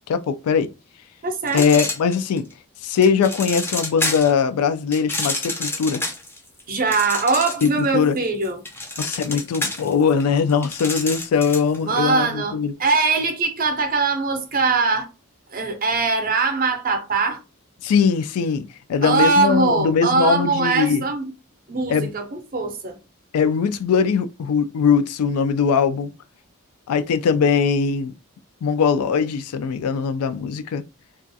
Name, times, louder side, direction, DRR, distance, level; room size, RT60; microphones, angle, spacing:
voice 1, 0.1-0.7 1.5-2.4 2.8-6.0 7.6-8.2 9.0-12.7 17.8-21.0 21.9-22.1 23.3-26.1 26.9-28.1 28.6-30.8, left 6 dB, 90° left, 0.3 m, -20 dB
voice 2, 1.2-1.9 6.7-8.6 11.8-15.1 15.5-17.4 19.0-21.3 21.7-23.0, right 4 dB, 40° right, 0.5 m, -22 dB
sound 1, 1.5-2.5 3.0-4.4 4.9-7.8 8.2-11.8, left 2 dB, 10° left, 0.4 m, -28 dB
2.4 x 2.3 x 2.6 m
head